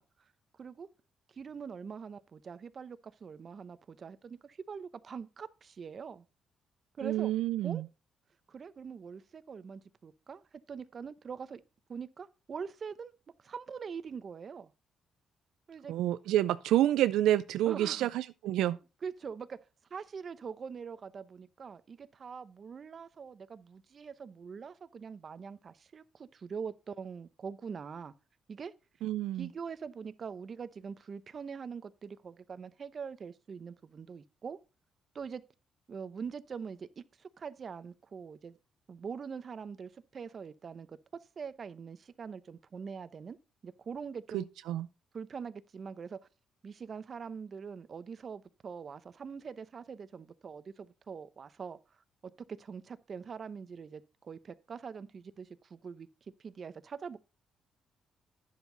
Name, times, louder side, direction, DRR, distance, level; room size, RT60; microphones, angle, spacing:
voice 1, 1.3-6.2 7.0-7.3 7.6-7.8 8.5-10.4 10.7-11.6 11.9-13.1 13.4-14.7 15.7-15.9 17.7-18.1 19.0-19.6 19.9-28.1 28.5-28.7 29.4-34.6 35.1-35.4 35.9-38.6 38.9-41.0 41.4-43.4 43.6-44.5 45.1-46.2 46.6-51.8 52.5-56.1 56.4-57.2, right 6 dB, 45° right, 0.7 m, -43 dB
voice 2, 7.0-7.8 15.9-18.8 29.0-29.5 44.3-44.9, right 13 dB, 85° right, 0.4 m, -28 dB
10.0 x 7.2 x 3.9 m
cardioid pair, 90°, 0 cm